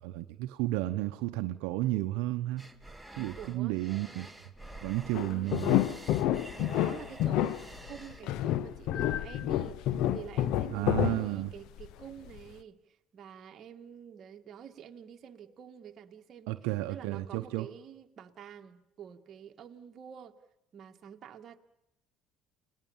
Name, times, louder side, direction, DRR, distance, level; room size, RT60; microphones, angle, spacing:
voice 1, 0.0-2.6 3.2-4.3 4.8-5.8 10.7-11.5 16.5-17.7, right 17 dB, 90° right, 0.8 m, -32 dB
sound 1, 2.6-8.2, right 1 dB, ahead, 1.8 m, -49 dB
voice 2, 3.1-3.8 5.1-5.6 6.6-12.8 13.1-16.5 16.9-20.4 20.7-21.6, right 8 dB, 50° right, 1.8 m, -48 dB
sound 2, 5.1-11.9 12.3-12.4, left 12 dB, 75° left, 0.9 m, -29 dB
29.5 x 19.5 x 7.3 m
cardioid pair, 105°, 0 cm